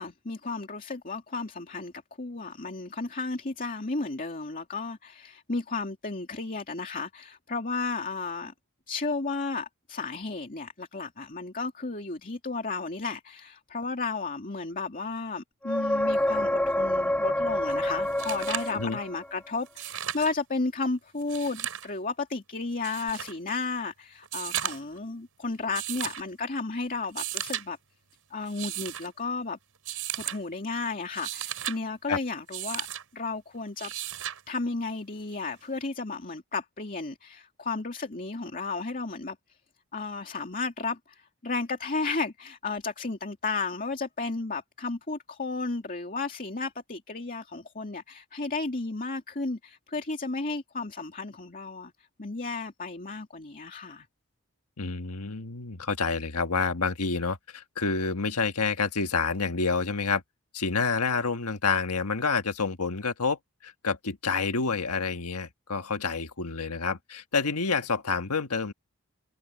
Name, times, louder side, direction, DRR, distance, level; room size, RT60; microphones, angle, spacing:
voice 1, 0.0-1.9 2.2-8.5 8.9-27.8 28.3-29.6 30.1-32.9 33.1-33.9 34.5-39.6 39.9-51.9 52.2-54.1, left 3 dB, 40° left, 2.5 m, -33 dB
sound 1, 15.6-19.4 23.1-23.2, left 1 dB, 5° left, 3.3 m, -27 dB
sound 2, 17.7-17.8 18.1-18.8 19.7-20.3 21.2-21.9 22.8-23.3 24.2-25.0 25.7-26.2 27.0-27.6 28.4-29.1 29.8-30.4 31.0-31.8 32.5-33.0 33.8-34.4 35.8-35.9, right 11 dB, 70° right, 5.4 m, -35 dB
voice 2, 54.8-60.2 60.5-68.7, left 4 dB, 80° left, 1.5 m, -28 dB
head